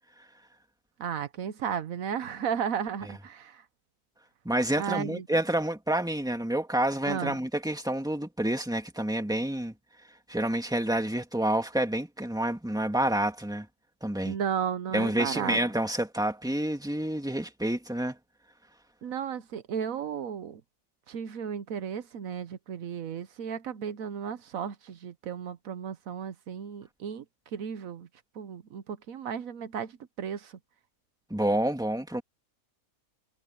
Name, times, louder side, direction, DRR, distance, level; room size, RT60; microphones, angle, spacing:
voice 1, 1.0-3.6 4.8-5.2 7.1-7.4 14.2-15.6 19.0-20.6 21.1-27.2 27.5-28.1 28.3-30.6, right 8 dB, 75° right, 1.3 m, -34 dB
voice 2, 4.4-9.7 10.3-13.7 14.0-14.4 14.9-18.2 31.3-32.2, right 1 dB, 5° right, 2.1 m, -28 dB
omnidirectional pair, 1.5 m